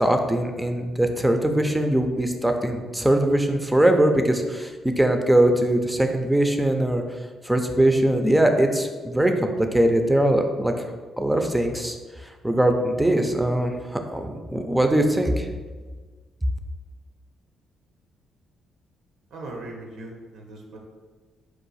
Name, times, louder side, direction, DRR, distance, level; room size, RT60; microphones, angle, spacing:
voice 1, 0.0-7.0 7.4-10.7 11.2-12.0 12.2-15.5, right 1 dB, 5° right, 5 dB, 0.5 m, -21 dB
voice 2, 19.3-20.8, right 2 dB, 80° right, 1 dB, 0.8 m, -39 dB
4.6 x 2.5 x 4.0 m, 1.4 s
cardioid pair, 90°, 0 cm